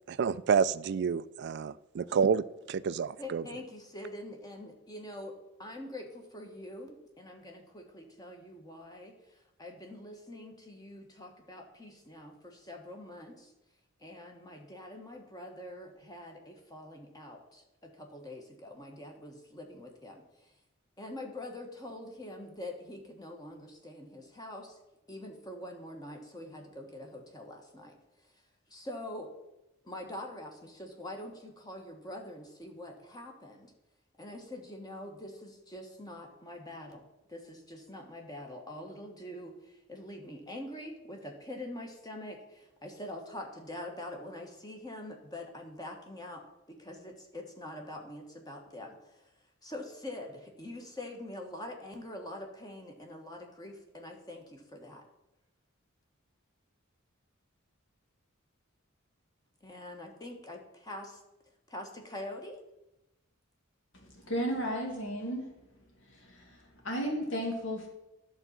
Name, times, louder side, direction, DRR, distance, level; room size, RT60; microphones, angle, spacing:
voice 1, 0.1-3.4, right 6 dB, 55° right, 0.3 m, -29 dB
voice 2, 3.2-5.3 5.6-13.5 14.0-20.5 21.0-24.8 25.1-27.9 28.7-29.3 29.8-33.7 34.2-46.4 46.7-49.3 49.6-55.0 59.6-61.2 61.7-62.6, left 1 dB, 20° left, 1.3 m, -44 dB
voice 3, 63.9-65.6 66.0-67.9, equal, 65° left, 2.0 m, -34 dB
11.0 x 4.0 x 7.3 m
head